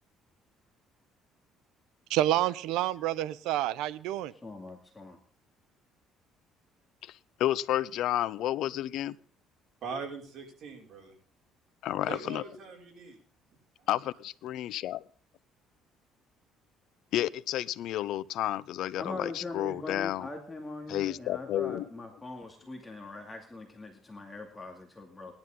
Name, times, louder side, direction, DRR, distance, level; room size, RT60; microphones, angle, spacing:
voice 1, 2.1-4.3, right 13 dB, 85° right, 18 dB, 0.7 m, -28 dB
voice 2, 4.3-5.2 19.0-25.3, left 2 dB, 15° left, 2 dB, 2.4 m, -41 dB
voice 3, 7.0-9.2 11.8-12.4 13.9-15.0 17.1-20.3 20.9-21.8, left 13 dB, 70° left, 17 dB, 0.7 m, -31 dB
voice 4, 9.8-11.1 12.1-13.2, right 5 dB, 50° right, 0 dB, 5.7 m, -41 dB
18.5 x 11.5 x 3.8 m, 0.44 s
cardioid pair, 125°, 0 cm